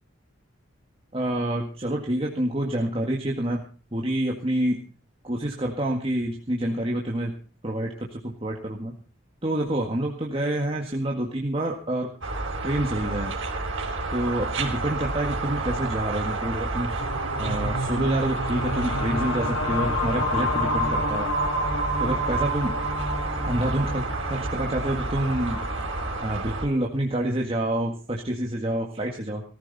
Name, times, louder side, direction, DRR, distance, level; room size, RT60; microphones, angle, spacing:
voice 1, 1.1-3.6 3.9-4.8 5.2-7.4 7.6-8.9 9.4-12.1 12.6-13.3 14.1-16.9 17.4-21.3 22.0-22.7 23.5-25.6 26.2-29.4, right 1 dB, 30° right, 0 dB, 1.9 m, -27 dB
sound 1, 12.2-26.7, right 2 dB, 70° right, 4.5 m, -30 dB
sound 2, 17.0-26.2, left 1 dB, 85° left, 3.1 m, -29 dB
19.0 x 14.0 x 4.2 m, 0.36 s
head